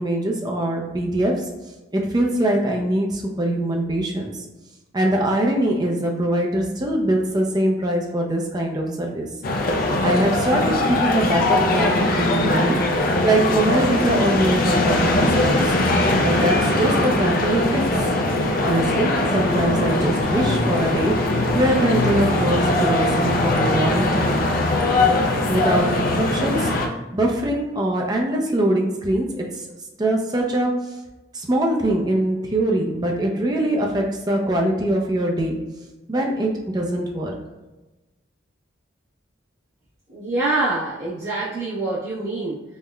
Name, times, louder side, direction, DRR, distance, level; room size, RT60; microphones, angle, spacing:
voice 1, 0.0-1.5 1.9-4.4 4.9-9.3 10.0-12.8 13.2-15.8 16.2-17.9 18.6-24.5 25.5-29.7 30.0-31.0 31.3-35.6 36.1-37.4, right 1 dB, 20° right, 0 dB, 0.4 m, -22 dB
sound 1, 9.4-26.9, left 2 dB, 45° left, 0.4 m, -21 dB
voice 2, 40.1-42.6, right 2 dB, 60° right, -10 dB, 0.8 m, -25 dB
5.3 x 2.1 x 2.3 m, 1.1 s
head